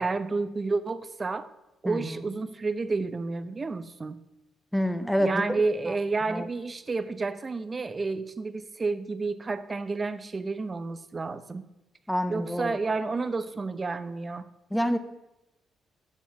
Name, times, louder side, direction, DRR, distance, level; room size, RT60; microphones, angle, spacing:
voice 1, 0.0-1.5 1.8-4.2 5.2-11.7 12.3-14.5, right 3 dB, 30° right, 13 dB, 0.7 m, -30 dB
voice 2, 1.8-2.2 4.7-5.4 5.9-6.0 6.3-6.5 12.1-12.8 14.7-15.0, equal, ahead, 8 dB, 0.9 m, -27 dB
7.3 x 7.1 x 5.9 m, 0.98 s
cardioid pair, 90°, 0 cm